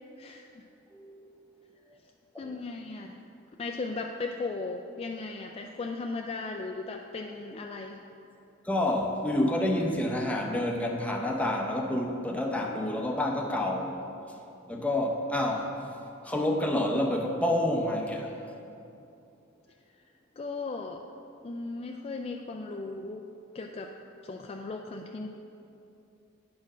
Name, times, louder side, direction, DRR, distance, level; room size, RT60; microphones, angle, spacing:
voice 1, 0.2-0.6 2.4-3.2 3.6-8.0 20.4-21.0 21.4-23.2 23.5-23.9 24.2-25.3, left 3 dB, 30° left, 2 dB, 0.3 m, -37 dB
voice 2, 0.9-1.3 2.3-2.5 8.6-14.1 14.7-15.7 16.2-18.3, left 1 dB, 5° left, 0 dB, 0.7 m, -28 dB
9.3 x 4.4 x 6.1 m, 2.8 s
head